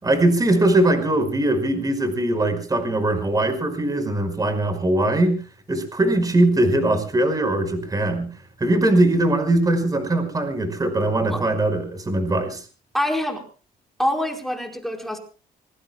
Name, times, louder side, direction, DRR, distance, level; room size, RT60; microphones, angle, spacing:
voice 1, 0.0-5.4 5.7-8.3 8.6-12.7, right 1 dB, 20° right, 7 dB, 5.3 m, -21 dB
voice 2, 12.9-13.4 14.0-15.2, left 1 dB, ahead, 1 dB, 4.7 m, -25 dB
25.5 x 23.5 x 2.3 m, 0.39 s
cardioid pair, 110°, 17 cm